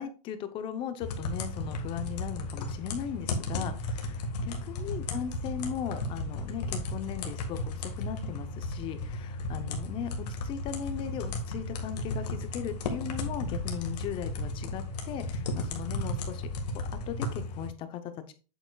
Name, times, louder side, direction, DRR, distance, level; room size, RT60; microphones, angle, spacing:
voice 1, 0.0-16.5 17.1-18.3, left 8 dB, 25° left, 10 dB, 0.6 m, -38 dB
sound 1, 1.0-17.7, left 2 dB, 75° left, 1.6 m, -34 dB
7.9 x 6.7 x 2.3 m, 0.35 s
supercardioid pair, 160°, 21 cm